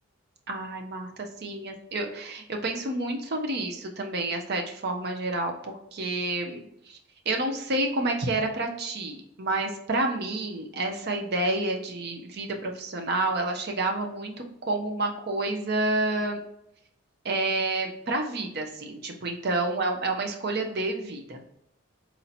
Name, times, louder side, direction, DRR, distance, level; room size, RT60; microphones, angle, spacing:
voice 1, 0.5-7.0 7.3-14.3 14.6-16.4 17.2-21.4, right 2 dB, 50° right, 3 dB, 0.7 m, -29 dB
4.2 x 2.8 x 4.1 m, 0.80 s
head